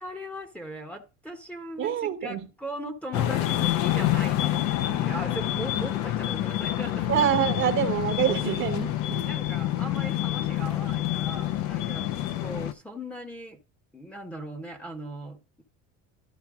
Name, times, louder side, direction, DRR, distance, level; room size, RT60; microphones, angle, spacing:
voice 1, 0.0-7.4 9.2-12.1 12.4-13.6 13.9-15.6, equal, 5° left, 1.0 m, -39 dB
voice 2, 1.8-2.4 7.1-9.3, right 10 dB, 40° right, 1.0 m, -26 dB
sound 1, 3.1-12.7, left 13 dB, 70° left, 0.9 m, -27 dB
12.5 x 4.5 x 3.6 m
cardioid pair, 135°, 30 cm